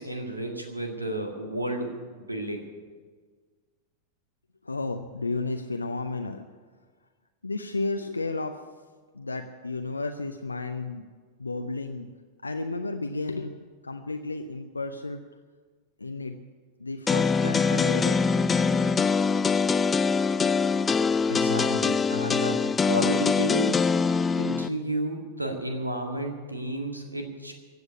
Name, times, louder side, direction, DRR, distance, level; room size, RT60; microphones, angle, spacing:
voice 1, 0.0-2.6 21.3-22.6 22.9-23.8 24.4-27.5, right 1 dB, 85° right, 4 dB, 1.9 m, -31 dB
voice 2, 4.6-6.4 7.4-8.6 9.1-11.0 11.4-12.1 12.4-13.6 13.8-15.2 16.0-16.4 16.8-18.2, left 3 dB, 80° left, 6 dB, 0.6 m, -32 dB
sound 1, 17.1-24.7, left 5 dB, 15° left, 0.4 m, -23 dB
15.5 x 8.0 x 9.6 m, 1.5 s
figure-of-eight pair, 90°, 0 cm